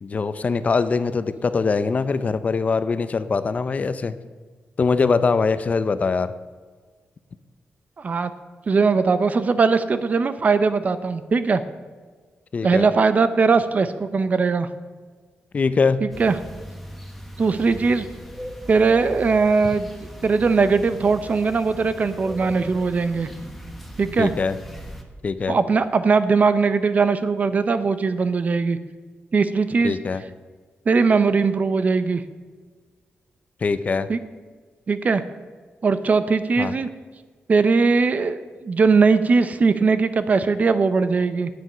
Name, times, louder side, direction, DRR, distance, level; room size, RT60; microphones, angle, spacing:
voice 1, 0.0-4.2 4.8-6.3 12.5-12.9 15.5-16.0 24.2-24.6 25.2-25.6 29.8-30.2 33.6-34.1 36.6-36.7, left 4 dB, 35° left, 13 dB, 0.5 m, -22 dB
voice 2, 8.0-8.3 8.7-11.6 12.6-14.7 16.0-16.3 17.4-18.1 18.7-19.9 20.2-23.3 24.0-24.3 25.5-28.8 29.3-30.0 30.9-32.2 34.1-34.2 34.9-35.2 35.8-36.9 37.5-41.5, right 4 dB, 40° right, 12 dB, 0.6 m, -20 dB
sound 1, 16.1-25.0, equal, ahead, 1.2 m, -39 dB
9.6 x 9.2 x 5.6 m, 1.5 s
wide cardioid pair, 140°, 4 cm